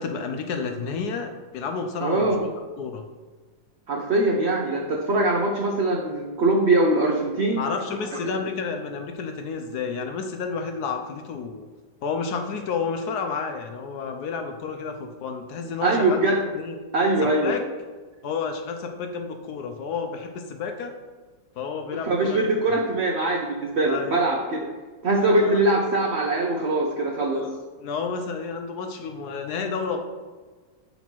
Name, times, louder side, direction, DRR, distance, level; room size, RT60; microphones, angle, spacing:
voice 1, 0.0-2.4 2.8-3.0 7.6-11.7 12.0-16.2 16.5-16.8 17.2-17.6 18.2-20.9 21.6-22.4 23.9-24.2 25.2-25.6 27.3-30.0, left 5 dB, 70° left, 5 dB, 1.0 m, -31 dB
voice 2, 2.0-2.4 3.9-7.7 8.2-8.3 15.8-16.4 16.9-17.6 22.0-24.7 25.0-27.4, right 2 dB, 85° right, 1 dB, 0.5 m, -22 dB
7.2 x 4.0 x 4.4 m, 1.4 s
omnidirectional pair, 2.0 m